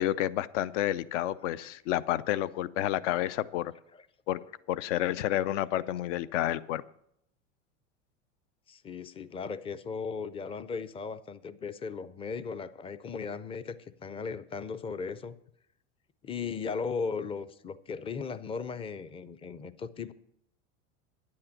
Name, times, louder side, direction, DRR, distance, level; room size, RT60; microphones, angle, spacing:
voice 1, 0.0-3.7 4.3-4.4 4.7-6.8, left 13 dB, 70° left, 18 dB, 0.6 m, -30 dB
voice 2, 8.7-13.8 14.0-15.4 16.2-20.1, left 5 dB, 15° left, 14 dB, 0.4 m, -37 dB
10.0 x 8.6 x 6.5 m, 0.76 s
supercardioid pair, 115°, 37 cm